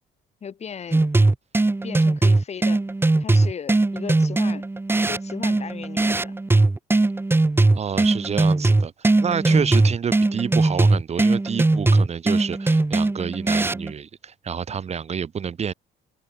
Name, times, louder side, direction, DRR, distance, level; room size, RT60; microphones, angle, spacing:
voice 1, 0.4-1.0 1.8-2.8 3.2-4.6 5.0-6.3 9.4-9.7, left 7 dB, 40° left, 7.6 m, -36 dB
sound 1, 0.9-13.9, right 2 dB, 15° right, 3.0 m, -20 dB
voice 2, 7.7-15.7, right 7 dB, 40° right, 5.0 m, -28 dB
cardioid pair, 110°, 17 cm